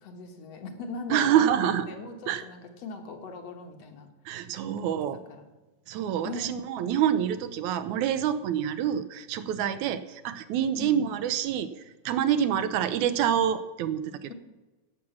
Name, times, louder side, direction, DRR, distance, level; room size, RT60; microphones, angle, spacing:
voice 1, 0.0-4.1 4.8-4.9 5.3-5.4 6.2-6.5 10.8-11.1, left 3 dB, 65° left, 4 dB, 2.3 m, -39 dB
voice 2, 1.1-1.9 2.3-2.5 4.3-5.2 5.9-11.7 12.1-14.3, right 9 dB, 85° right, 12 dB, 2.2 m, -27 dB
15.0 x 6.2 x 7.1 m, 1.2 s
omnidirectional pair, 3.3 m